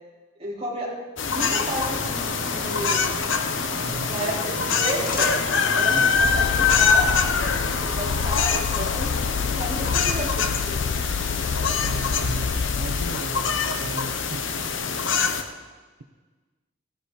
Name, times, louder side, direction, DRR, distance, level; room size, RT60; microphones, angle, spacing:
voice 1, 0.4-0.9 1.3-3.1 3.8-5.3 5.6-7.2 7.7-10.9, equal, 30° right, -6 dB, 4.1 m, -32 dB
sound 1, 1.2-15.4, left 5 dB, 80° left, 1.1 m, -24 dB
sound 2, 1.7-8.1, left 2 dB, 45° left, 1.3 m, -35 dB
voice 2, 3.8-4.2 5.9-6.2 8.0-8.3 11.8-14.5, right 2 dB, 75° right, 4 dB, 0.9 m, -36 dB
Purr, 6.1-13.1, left 6 dB, 60° left, 0.3 m, -29 dB
15.5 x 12.5 x 4.2 m, 1.3 s
head